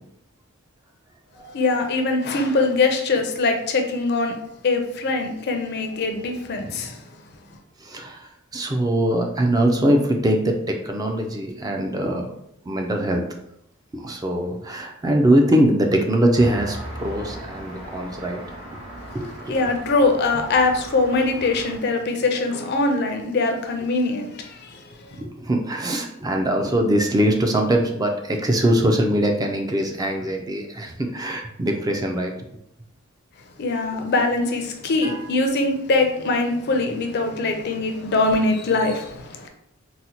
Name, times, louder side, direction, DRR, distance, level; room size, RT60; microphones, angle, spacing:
voice 1, 1.5-4.3 4.6-7.0 19.5-25.2 33.6-39.5, left 3 dB, 55° left, 4 dB, 0.5 m, -22 dB
voice 2, 7.8-12.3 12.6-13.3 13.9-18.4 18.7-18.8 19.1-19.5 25.2-32.3 35.0-35.2, right 1 dB, 20° right, 3 dB, 0.3 m, -22 dB
Traffic noise roadway noise, 16.3-21.8, right 1 dB, 75° right, 1.2 m, -37 dB
3.9 x 2.1 x 2.8 m, 0.76 s
head